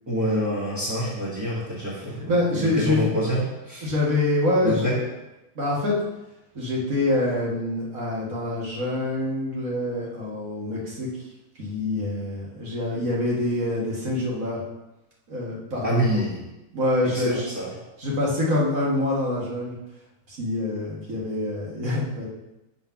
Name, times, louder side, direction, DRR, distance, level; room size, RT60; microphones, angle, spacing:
voice 1, 0.1-3.9 4.6-5.0 15.8-16.4 17.0-17.7, equal, 10° right, -8 dB, 1.5 m, -27 dB
voice 2, 2.3-3.1 3.8-5.1 5.6-6.0 6.5-11.1 11.6-14.6 15.3-16.2 16.7-17.5 18.0-19.8 20.3-22.3, left 1 dB, 55° right, -5 dB, 2.1 m, -25 dB
7.2 x 4.0 x 5.8 m, 0.97 s
omnidirectional pair, 1.7 m